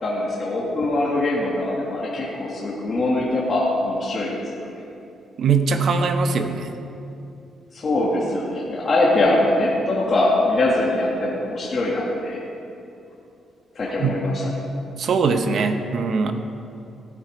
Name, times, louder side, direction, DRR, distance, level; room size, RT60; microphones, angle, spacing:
voice 1, 0.0-4.7 7.7-12.4 13.8-14.5, left 2 dB, 35° left, -5 dB, 1.9 m, -22 dB
voice 2, 5.4-6.7 14.0-14.2 15.0-16.3, right 5 dB, 55° right, 7 dB, 0.9 m, -21 dB
15.5 x 9.0 x 5.1 m, 2.7 s
cardioid pair, 135°, 0 cm